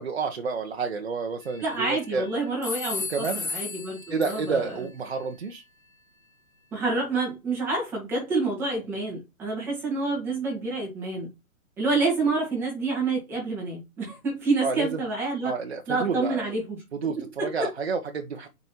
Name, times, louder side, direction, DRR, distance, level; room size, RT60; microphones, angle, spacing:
voice 1, 0.0-2.3 3.1-3.4 4.1-5.6 14.6-15.0 15.4-16.4 16.9-17.2 17.4-18.5, right 5 dB, 45° right, 1.2 m, -29 dB
sound 1, 1.4-2.1 2.6-4.8, left 4 dB, 70° left, 2.6 m, -35 dB
voice 2, 1.6-4.8 6.7-11.3 11.8-15.5 15.9-16.8 17.2-17.7, right 3 dB, 5° right, 1.9 m, -28 dB
8.1 x 5.4 x 3.0 m
hypercardioid pair, 175°, 43 cm